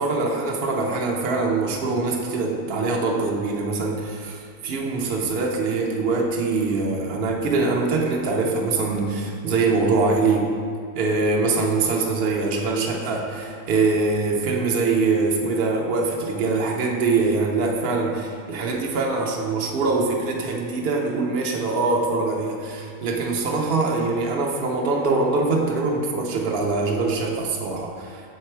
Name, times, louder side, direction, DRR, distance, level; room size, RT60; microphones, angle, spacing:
voice 1, 0.0-10.5 10.9-28.2, right 3 dB, 50° right, 0 dB, 0.8 m, -23 dB
6.7 x 4.5 x 4.5 m, 2.3 s
omnidirectional pair, 1.5 m